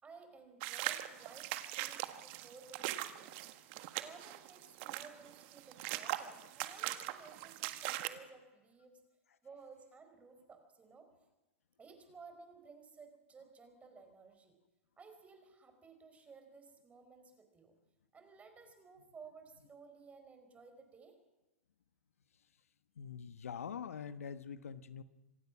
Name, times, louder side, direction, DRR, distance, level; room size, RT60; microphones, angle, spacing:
voice 1, 0.0-3.5 4.0-9.0 9.4-11.1 11.8-14.6 15.0-17.7 18.1-21.2, right 4 dB, 20° right, 6 dB, 4.6 m, -57 dB
sound 1, 0.6-8.1, right 16 dB, 55° right, 1.6 m, -41 dB
voice 2, 23.0-25.0, left 7 dB, 85° left, 13 dB, 1.2 m, -44 dB
26.5 x 16.5 x 6.1 m, 1.1 s
hypercardioid pair, 110°, 7 cm